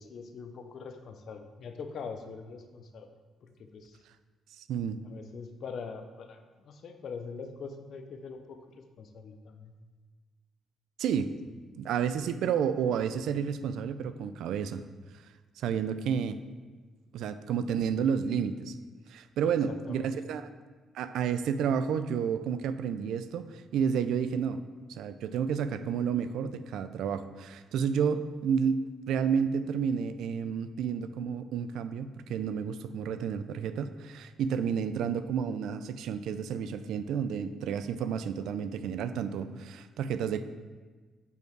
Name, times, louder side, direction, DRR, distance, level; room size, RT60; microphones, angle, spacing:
voice 1, 0.0-3.1 3.4-4.0 5.0-9.7 19.7-20.1, left 5 dB, 65° left, 7 dB, 0.6 m, -43 dB
voice 2, 4.6-5.0 11.0-11.4 11.8-14.8 15.6-16.4 17.1-18.8 19.1-20.5 20.9-24.6 24.9-40.4, right 7 dB, 80° right, 11 dB, 0.3 m, -31 dB
5.3 x 4.7 x 4.6 m, 1.4 s
cardioid pair, 90°, 0 cm